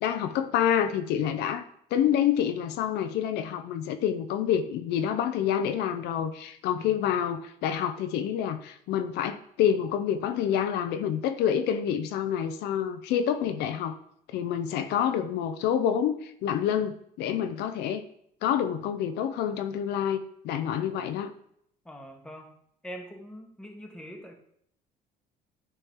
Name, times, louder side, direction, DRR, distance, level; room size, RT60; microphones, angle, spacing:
voice 1, 0.0-1.6 1.9-14.0 14.3-18.0 18.4-21.3, left 9 dB, 85° left, 0.6 m, -27 dB
voice 2, 6.8-7.2 14.8-15.0 21.8-22.5 22.8-24.3, equal, 5° left, 1.2 m, -44 dB
10.0 x 4.4 x 3.6 m
cardioid pair, 110°, 17 cm